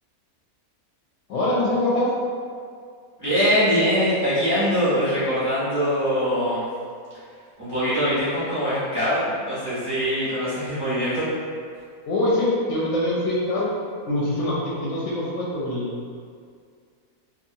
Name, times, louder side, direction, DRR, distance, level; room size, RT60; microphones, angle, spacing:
voice 1, 1.3-2.1 12.1-13.7 14.1-15.9, left 1 dB, 65° left, -7 dB, 0.8 m, -23 dB
voice 2, 3.2-6.6 7.6-11.3, equal, 20° right, -14 dB, 0.9 m, -23 dB
2.8 x 2.4 x 2.6 m, 2.2 s
omnidirectional pair, 1.5 m